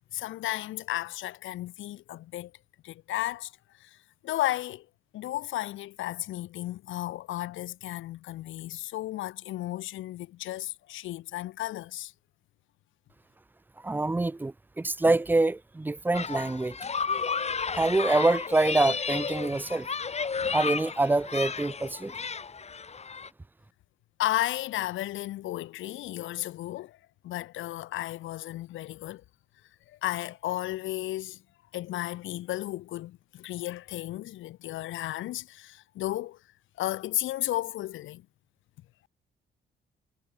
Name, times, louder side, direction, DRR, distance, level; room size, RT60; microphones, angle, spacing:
voice 1, 0.1-2.5 2.8-3.5 3.8-4.0 4.2-4.9 5.1-12.1 24.2-27.0 27.2-29.2 29.9-31.4 31.7-36.4 36.8-38.3, left 15 dB, 80° left, 0.7 m, -34 dB
voice 2, 13.8-16.8 17.7-19.9 20.5-22.2, right 2 dB, 10° right, 0.4 m, -25 dB
sound 1, 16.1-23.3, left 5 dB, 35° left, 1.6 m, -33 dB
cardioid pair, 90°, 20 cm